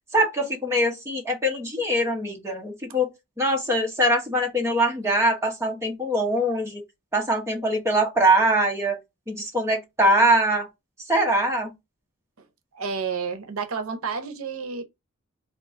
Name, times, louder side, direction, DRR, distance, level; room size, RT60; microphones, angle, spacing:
voice 1, 0.1-3.1 3.4-6.8 7.1-9.0 9.3-10.7 11.1-11.7, right 1 dB, 10° right, 0.8 m, -22 dB
voice 2, 12.7-14.8, right 5 dB, 80° right, 0.6 m, -30 dB
3.6 x 2.4 x 3.5 m
head